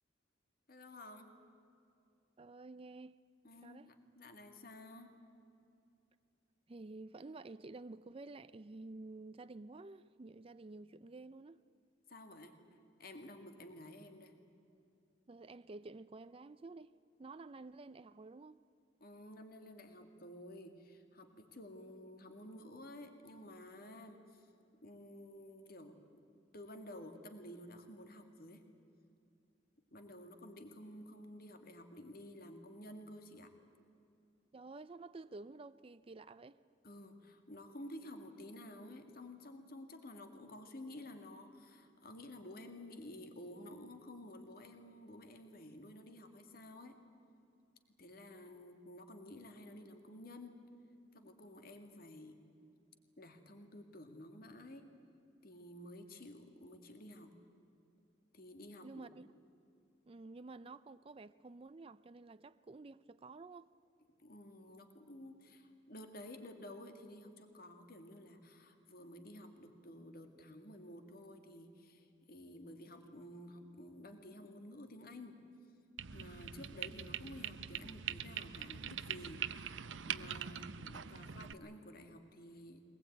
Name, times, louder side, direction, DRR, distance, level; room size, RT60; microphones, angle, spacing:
voice 1, 0.7-1.3 3.4-5.1 12.1-12.6 13.0-14.3 19.0-24.5 24.8-28.6 29.9-33.5 36.8-47.0 48.0-50.6 51.1-52.4 53.2-54.9 55.4-57.3 58.3-59.1 64.2-75.4 76.1-79.5 80.1-82.8, left 1 dB, 50° left, 2.1 m, -52 dB
voice 2, 2.4-3.2 3.6-3.9 6.7-11.6 15.3-16.9 17.2-18.6 34.5-36.6 58.8-59.3 60.1-63.7, right 3 dB, 30° right, 0.5 m, -51 dB
sound 1, 76.0-81.5, right 8 dB, 85° right, 0.7 m, -43 dB
23.0 x 19.5 x 9.3 m
head